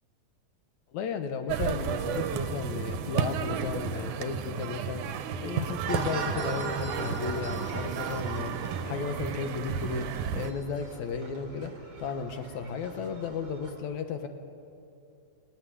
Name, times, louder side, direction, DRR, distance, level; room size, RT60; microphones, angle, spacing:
voice 1, 0.9-10.1 10.3-14.3, left 5 dB, 70° left, 7 dB, 2.3 m, -34 dB
sound 1, 1.5-10.5, right 7 dB, 80° right, 2.3 m, -33 dB
sound 2, 3.8-4.6 4.9-6.0 6.3-7.1 7.4-7.5 7.7-11.7 12.0-12.7 13.0-13.2, right 5 dB, 65° right, 2.7 m, -55 dB
sound 3, 5.9-13.7, right 3 dB, 45° right, 3.4 m, -40 dB
18.0 x 17.5 x 10.0 m, 2.6 s
omnidirectional pair, 3.5 m